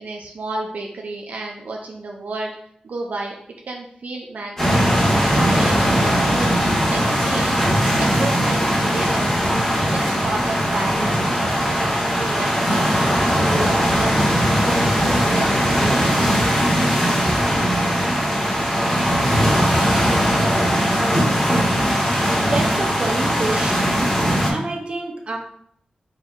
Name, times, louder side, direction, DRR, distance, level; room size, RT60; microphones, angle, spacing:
voice 1, 0.0-2.5 2.8-3.4 3.7-4.9 5.2-6.5 6.9-7.5 8.0-9.4 9.9-14.2 14.6-17.4, right 2 dB, 70° right, 0 dB, 0.5 m, -32 dB
sound 1, 4.6-24.5, equal, 20° left, 1.7 m, -19 dB
voice 2, 22.4-24.2 24.5-25.4, right 2 dB, 40° right, 1 dB, 0.7 m, -27 dB
4.6 x 4.2 x 2.5 m, 0.67 s
wide cardioid pair, 135°, 3 cm